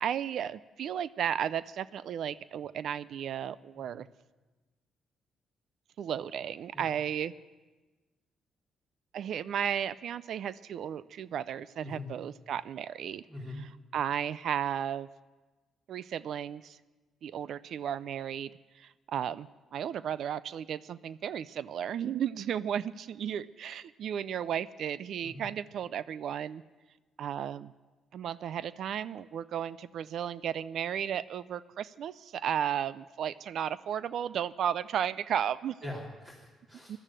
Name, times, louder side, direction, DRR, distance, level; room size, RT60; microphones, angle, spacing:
voice 1, 0.0-4.1 6.0-7.3 9.1-13.2 13.5-15.1 15.9-16.8 17.2-18.5 18.8-26.6 27.2-27.7 28.1-35.8 36.9-37.0, right 9 dB, 70° right, 18 dB, 0.4 m, -34 dB
voice 2, 13.3-13.6 25.2-25.4 35.8-37.0, left 1 dB, 25° right, -5 dB, 3.6 m, -43 dB
15.5 x 12.0 x 7.5 m, 1.2 s
cardioid pair, 90°, 0 cm